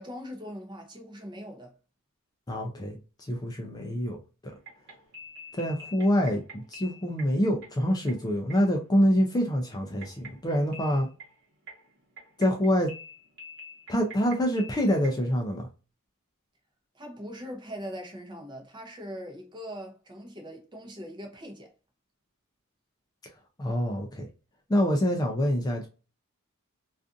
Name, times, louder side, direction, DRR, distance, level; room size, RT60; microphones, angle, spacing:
voice 1, 0.0-1.7 16.9-21.7, equal, 20° right, 0.7 m, -41 dB
voice 2, 2.5-2.9 3.3-4.2 5.5-11.1 12.4-12.9 13.9-15.7 23.6-24.3 24.7-25.9, equal, 20° left, 0.4 m, -26 dB
sound 1, 4.5-15.3, left 1 dB, 55° right, 1.0 m, -47 dB
2.5 x 2.4 x 2.4 m
head